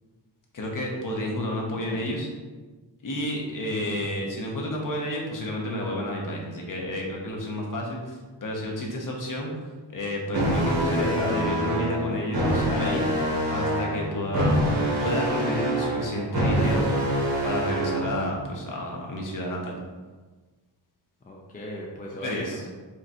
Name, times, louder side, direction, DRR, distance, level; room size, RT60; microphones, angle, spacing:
voice 1, 0.5-2.3 3.0-8.2 8.4-9.5 9.9-13.1 13.5-14.6 15.0-16.9 17.4-19.8 22.2-22.6, left 1 dB, 45° left, -1 dB, 0.9 m, -30 dB
voice 2, 1.7-2.0 3.8-4.1 21.2-22.7, left 1 dB, 20° left, -2 dB, 0.5 m, -38 dB
sound 1, 10.3-18.3, right 1 dB, 55° right, 1.2 m, -26 dB
4.9 x 3.2 x 2.9 m, 1.3 s
wide cardioid pair, 140°, 44 cm